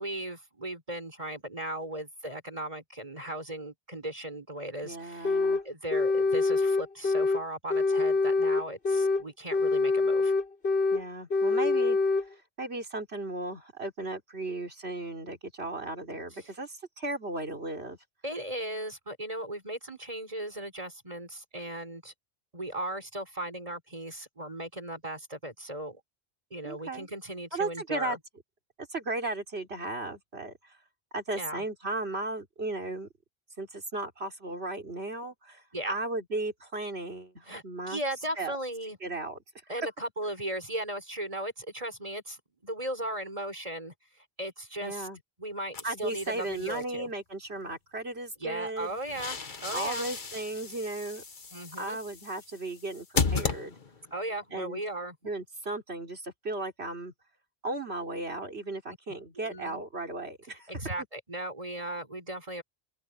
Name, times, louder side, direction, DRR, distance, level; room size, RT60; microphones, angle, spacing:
voice 1, 0.0-5.4 5.6-10.3 16.3-16.5 18.2-22.1 22.5-26.0 26.5-28.2 31.3-31.6 35.7-36.0 37.5-39.0 39.7-45.1 45.4-47.1 48.4-50.1 51.5-52.0 54.1-55.2 59.3-59.8 60.7-62.6, right 1 dB, 35° right, 4.8 m, -37 dB
voice 2, 4.8-5.6 10.9-18.0 26.6-27.1 27.5-28.2 28.9-30.8 31.1-33.1 33.6-38.0 38.4-38.5 39.0-39.4 39.7-39.8 44.8-45.2 45.8-49.0 49.7-51.2 51.8-53.8 54.5-54.8 55.2-57.1 57.6-60.9, right 2 dB, 90° right, 3.8 m, -35 dB
sound 1, 5.2-5.6 5.9-7.4 7.7-9.2 9.5-11.0 11.3-12.2, left 3 dB, 85° left, 4.1 m, -25 dB
sound 2, 45.7-46.8 48.8-54.2, left 4 dB, 50° left, 1.4 m, -35 dB
open air
omnidirectional pair, 1.1 m